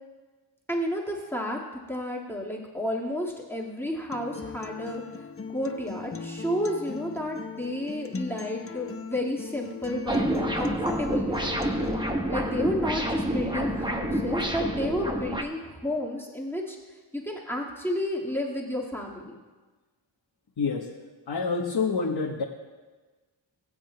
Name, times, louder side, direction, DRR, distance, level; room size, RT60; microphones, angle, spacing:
voice 1, 0.7-1.6 1.9-5.0 5.5-11.5 12.2-16.8 17.1-19.4, left 1 dB, 5° left, -3 dB, 1.8 m, -31 dB
Acoustic guitar, 4.1-12.1, left 5 dB, 30° left, 0.8 m, -39 dB
sound 1, 10.1-15.4, right 1 dB, 10° right, 1.1 m, -28 dB
voice 2, 20.6-20.9 21.3-22.4, left 4 dB, 55° left, 0 dB, 1.1 m, -27 dB
21.0 x 7.7 x 2.2 m, 1.3 s
cardioid pair, 50°, 45 cm